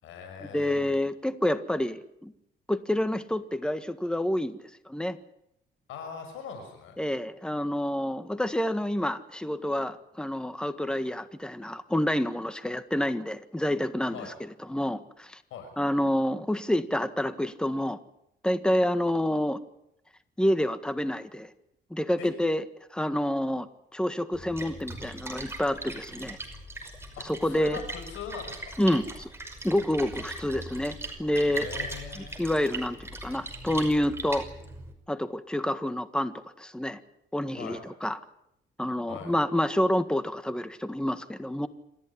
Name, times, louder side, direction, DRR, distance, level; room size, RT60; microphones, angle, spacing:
voice 1, 0.0-1.0 5.9-7.0 14.1-14.3 15.5-15.7 22.2-22.3 27.2-28.7 31.5-32.4 37.6-37.8 39.1-39.3, left 6 dB, 90° left, 5 dB, 6.1 m, -41 dB
voice 2, 0.5-2.3 2.7-4.6 4.8-5.2 7.0-15.4 15.8-18.0 18.4-19.6 20.4-21.5 21.9-22.6 22.9-23.7 23.9-26.4 27.2-27.8 28.8-29.3 29.6-31.7 32.2-34.5 35.1-37.0 37.3-38.2 38.8-41.7, left 1 dB, 5° left, 11 dB, 1.6 m, -28 dB
Splash splatter, 24.3-34.9, right 1 dB, 10° right, 5.6 m, -40 dB
27.0 x 14.5 x 10.0 m, 0.78 s
cardioid pair, 90°, 20 cm